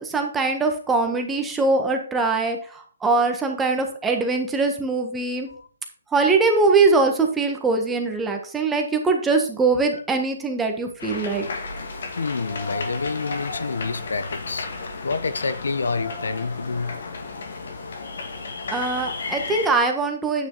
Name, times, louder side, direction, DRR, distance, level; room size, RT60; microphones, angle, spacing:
voice 1, 0.0-5.5 6.1-11.5 18.7-20.5, right 3 dB, 10° right, 1.5 m, -22 dB
sound 1, 11.0-19.7, left 3 dB, 65° left, 2.5 m, -33 dB
voice 2, 12.2-17.0, left 4 dB, 85° left, 0.9 m, -28 dB
9.3 x 6.3 x 4.0 m
hypercardioid pair, 155°, 0 cm